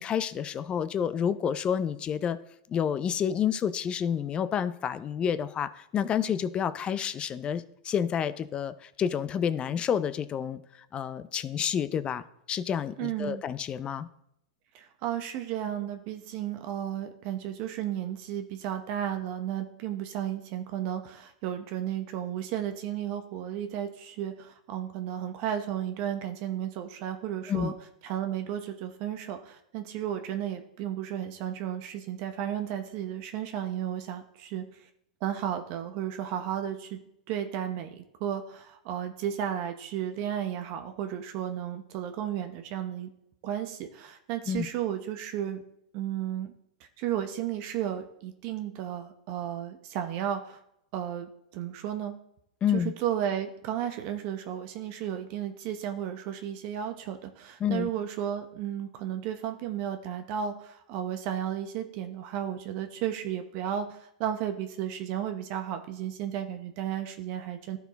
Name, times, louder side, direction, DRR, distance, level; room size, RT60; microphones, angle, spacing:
voice 1, 0.0-2.4 2.7-10.6 10.9-14.1 27.5-27.7 44.5-44.7 52.6-52.9 57.6-57.9, left 8 dB, 25° left, 15 dB, 0.5 m, -29 dB
voice 2, 13.0-13.4 14.7-27.7 28.0-34.9 35.2-37.0 37.3-43.1 43.4-45.6 45.9-46.5 46.8-50.6 50.9-52.1 52.7-67.8, right 10 dB, 50° right, 7 dB, 0.8 m, -33 dB
12.5 x 4.6 x 4.0 m, 0.76 s
hypercardioid pair, 125°, 4 cm